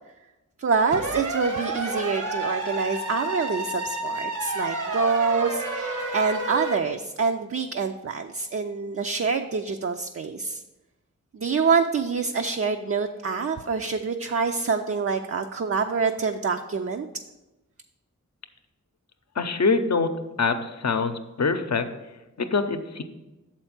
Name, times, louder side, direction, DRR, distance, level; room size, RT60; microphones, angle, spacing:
voice 1, 0.6-10.6 11.3-17.1, right 5 dB, 50° right, 5 dB, 0.4 m, -26 dB
sound 1, 0.9-6.7, right 2 dB, 75° right, 1.1 m, -30 dB
voice 2, 19.4-20.1 20.4-21.1 21.4-21.9 22.4-23.0, left 4 dB, 60° left, 9 dB, 0.6 m, -24 dB
7.1 x 4.4 x 5.9 m, 1.0 s
wide cardioid pair, 50°, 31 cm